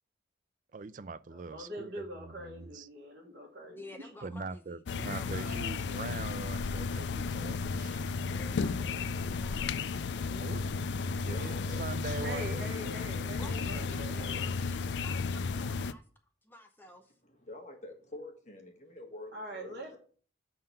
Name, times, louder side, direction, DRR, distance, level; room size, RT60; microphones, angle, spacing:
voice 1, 0.7-2.9 4.2-8.0 10.4-10.6 11.3-12.6 13.7-14.5, right 4 dB, 45° right, 0.4 m, -43 dB
voice 2, 1.3-4.1 12.2-14.5 19.3-20.0, equal, 65° right, 1.7 m, -43 dB
voice 3, 3.7-5.5 8.3-10.4 13.4-16.0 16.4-17.1, left 1 dB, 10° left, 0.8 m, -52 dB
sound 1, 4.9-15.9, left 4 dB, 75° left, 0.4 m, -34 dB
voice 4, 10.5-11.8 12.1-12.3 17.4-19.7, left 1 dB, 40° left, 1.4 m, -47 dB
7.8 x 3.8 x 5.6 m
head